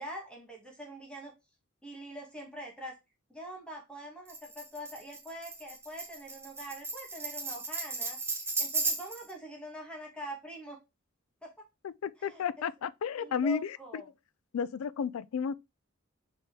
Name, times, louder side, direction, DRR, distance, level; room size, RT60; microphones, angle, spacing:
voice 1, 0.0-1.3 1.8-3.0 3.3-8.2 8.6-10.8 11.4-11.7 12.2-12.5 13.1-14.1, equal, 5° left, 1.3 m, -44 dB
Tambourine, 4.3-9.3, right 3 dB, 10° right, 0.8 m, -35 dB
voice 2, 11.8-13.6 14.5-15.6, left 6 dB, 75° left, 0.4 m, -32 dB
4.1 x 3.6 x 3.5 m
head